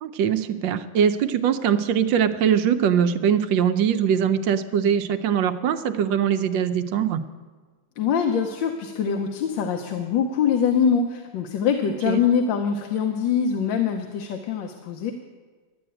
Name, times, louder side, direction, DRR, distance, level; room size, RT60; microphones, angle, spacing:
voice 1, 0.0-7.2 12.1-12.2, right 8 dB, 80° right, 10 dB, 1.4 m, -22 dB
voice 2, 8.0-15.1, left 7 dB, 90° left, 4 dB, 1.5 m, -23 dB
12.5 x 7.9 x 8.9 m, 1.4 s
omnidirectional pair, 2.0 m